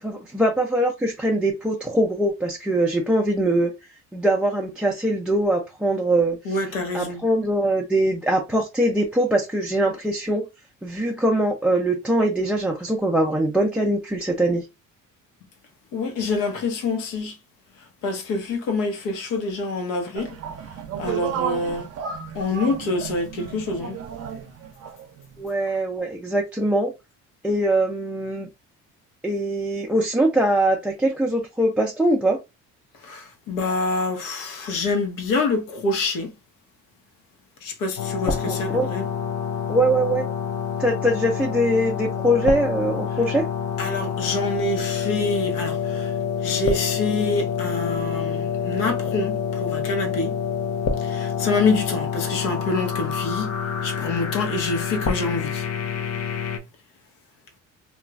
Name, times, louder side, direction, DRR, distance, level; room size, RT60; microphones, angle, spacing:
voice 1, 0.0-3.7 4.1-6.6 6.9-10.5 10.8-14.7 25.4-26.9 27.4-28.5 29.2-32.4 38.5-38.9 39.7-40.3 40.8-43.4, right 1 dB, 5° right, 0.4 m, -22 dB
voice 2, 6.4-7.2 15.9-17.4 18.0-20.4 21.0-21.9 22.3-24.0 33.0-36.3 37.6-39.1 43.8-46.1 46.4-50.3 51.0-53.5 53.8-55.7, left 3 dB, 85° left, 0.9 m, -26 dB
sound 1, 20.1-25.7, right 8 dB, 50° right, 0.6 m, -33 dB
sound 2, 38.0-56.6, left 7 dB, 55° left, 0.6 m, -27 dB
3.0 x 2.3 x 2.3 m
cardioid pair, 110°, 31 cm